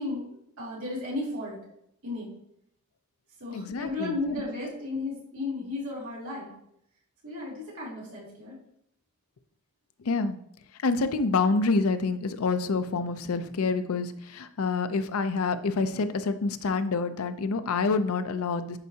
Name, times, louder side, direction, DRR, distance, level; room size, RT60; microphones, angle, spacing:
voice 1, 0.0-1.6 2.0-2.3 3.4-6.5 7.2-8.6, left 2 dB, 70° right, -5 dB, 2.9 m, -34 dB
voice 2, 3.5-4.1 10.0-10.4 10.8-18.8, left 4 dB, 90° left, 10 dB, 0.5 m, -27 dB
10.5 x 4.6 x 2.8 m, 0.74 s
head